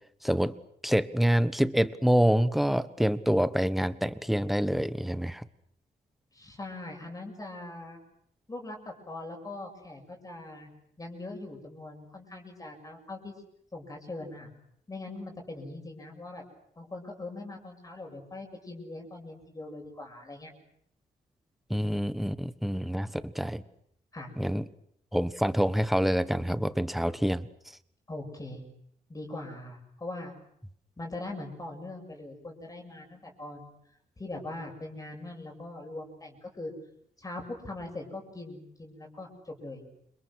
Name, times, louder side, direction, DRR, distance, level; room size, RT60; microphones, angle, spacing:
voice 1, 0.2-0.5 0.8-5.4 21.7-23.6 24.4-24.6 25.1-27.5, equal, ahead, 14 dB, 1.3 m, -26 dB
voice 2, 6.3-8.0 8.5-10.7 11.0-13.3 13.7-14.5 14.9-16.4 16.8-20.5 24.1-24.3 28.1-28.6 29.1-30.3 31.0-33.7 34.2-36.7 37.2-39.8, left 2 dB, 20° left, 2 dB, 7.3 m, -41 dB
29.5 x 27.5 x 6.4 m, 0.71 s
wide cardioid pair, 140°, 16 cm